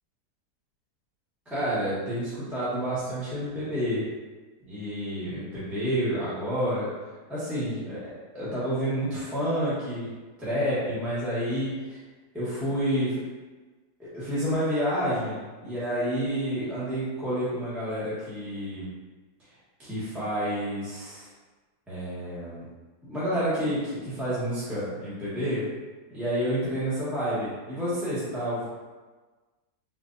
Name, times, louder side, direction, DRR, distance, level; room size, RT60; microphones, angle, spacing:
voice 1, 1.5-4.0 4.7-6.9 7.3-8.0 8.3-10.1 10.4-12.0 12.3-13.2 14.0-18.9 19.8-21.3 21.9-22.6 23.0-25.6 26.1-28.7, equal, ahead, -12 dB, 0.9 m, -29 dB
3.8 x 2.7 x 2.5 m, 1.3 s
omnidirectional pair, 1.8 m